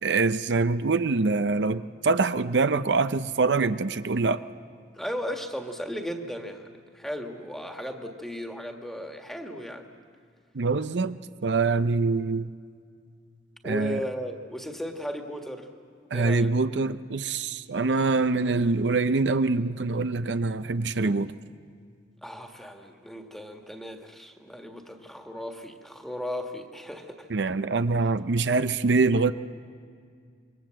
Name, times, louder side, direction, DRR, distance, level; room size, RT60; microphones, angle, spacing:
voice 1, 0.0-4.4 10.5-12.5 13.6-14.0 16.1-21.3 27.3-29.3, right 3 dB, 80° right, 11 dB, 0.6 m, -24 dB
voice 2, 4.9-9.9 13.6-15.7 16.1-16.5 22.2-27.3, equal, ahead, 3 dB, 1.7 m, -36 dB
27.0 x 23.5 x 7.6 m, 2.2 s
head